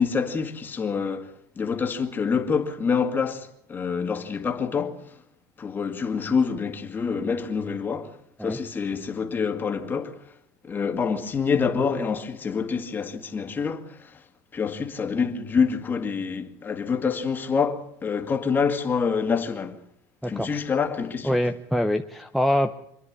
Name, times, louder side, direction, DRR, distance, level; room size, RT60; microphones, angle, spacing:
voice 1, 0.0-5.2 5.6-10.2 10.6-14.2 14.5-19.8 20.3-21.4, left 5 dB, 25° left, 2.1 m, -26 dB
voice 2, 20.2-20.6 21.2-22.7, equal, ahead, 0.8 m, -24 dB
26.5 x 10.5 x 9.8 m
supercardioid pair, 130°, 9 cm